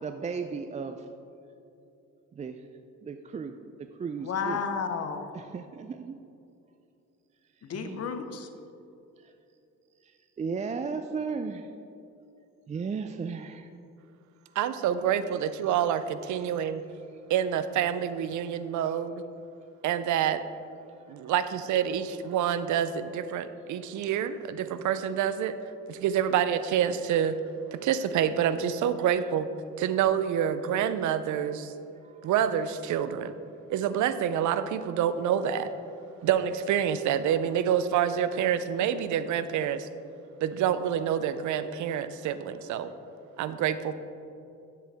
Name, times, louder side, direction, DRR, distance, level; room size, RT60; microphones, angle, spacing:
voice 1, 0.0-1.0 2.3-2.6 3.0-3.5 3.8-4.6 5.3-6.2 7.7-8.1 9.2-9.3 10.0-11.7 12.7-13.7 16.4-16.5 31.4-31.5 32.0-32.3, right 5 dB, 25° right, 6 dB, 0.3 m, -35 dB
voice 2, 4.2-5.3 7.6-8.5, left 6 dB, 55° left, 8 dB, 0.8 m, -32 dB
voice 3, 14.6-16.8 17.3-19.2 19.8-20.4 21.1-25.6 25.9-27.4 27.7-29.5 29.8-31.7 32.2-33.3 33.7-35.7 36.2-39.9 40.4-42.9 43.4-43.9, right 9 dB, 75° right, 12 dB, 0.5 m, -27 dB
9.9 x 7.5 x 3.4 m, 2.8 s
cardioid pair, 90°, 30 cm